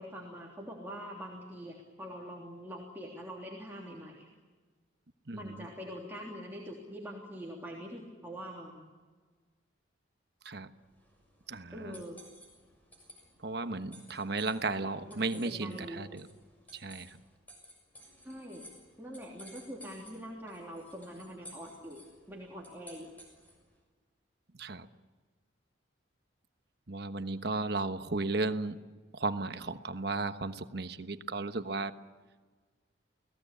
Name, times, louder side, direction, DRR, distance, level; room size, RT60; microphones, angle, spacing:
voice 1, 0.0-4.3 5.3-8.8 11.7-12.2 15.1-16.0 18.2-18.7 19.0-22.0 22.3-23.1, equal, 10° right, -2 dB, 3.2 m, -44 dB
voice 2, 5.3-5.7 10.4-10.7 11.5-12.0 13.4-16.3 16.7-17.2 24.5-24.9 26.9-28.8 29.1-32.0, right 3 dB, 55° right, 9 dB, 1.2 m, -35 dB
sound 1, 10.9-23.7, equal, 10° left, 6.7 m, -56 dB
29.5 x 19.0 x 8.5 m, 1.4 s
head